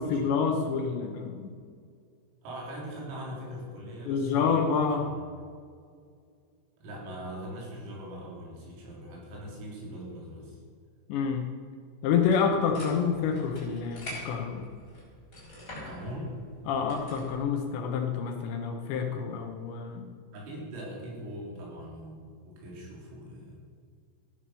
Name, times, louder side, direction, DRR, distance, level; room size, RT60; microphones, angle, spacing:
voice 1, 0.0-1.5 4.1-5.0 11.1-11.5 12.0-14.6 16.7-20.1, left 6 dB, 70° left, 3 dB, 2.9 m, -28 dB
voice 2, 2.4-5.2 6.8-10.6 15.8-16.4 20.3-23.6, equal, 80° right, -3 dB, 6.5 m, -41 dB
sound 1, 12.2-17.4, left 1 dB, 20° left, 5.5 m, -45 dB
15.0 x 10.5 x 7.0 m, 2.1 s
omnidirectional pair, 6.0 m